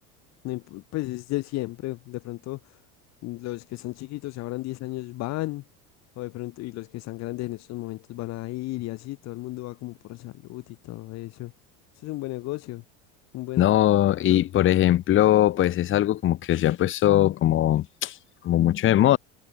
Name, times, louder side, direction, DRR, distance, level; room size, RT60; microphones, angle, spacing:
voice 1, 0.4-2.8 3.2-5.6 6.2-11.5 12.0-12.8 13.3-13.7 14.2-14.4, left 19 dB, 55° left, 2.8 m, -34 dB
voice 2, 13.6-18.2 18.4-19.2, left 13 dB, 35° left, 1.6 m, -20 dB
cardioid pair, 140°, 33 cm